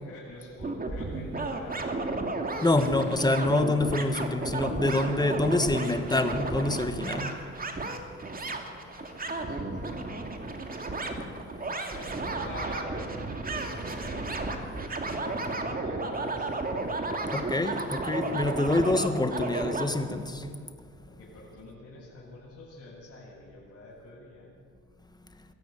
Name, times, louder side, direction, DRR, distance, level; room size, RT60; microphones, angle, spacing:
voice 1, 0.0-2.1 8.1-10.7 11.6-13.0 13.5-14.8 15.2-16.7 21.1-24.5, left 2 dB, 50° left, -7 dB, 7.6 m, -47 dB
sound 1, 0.6-19.9, right 2 dB, 30° right, 2.6 m, -33 dB
voice 2, 2.6-7.3 17.3-20.5, left 2 dB, 15° left, 8 dB, 1.7 m, -26 dB
22.0 x 13.5 x 9.5 m, 2.3 s
cardioid pair, 90°, 30 cm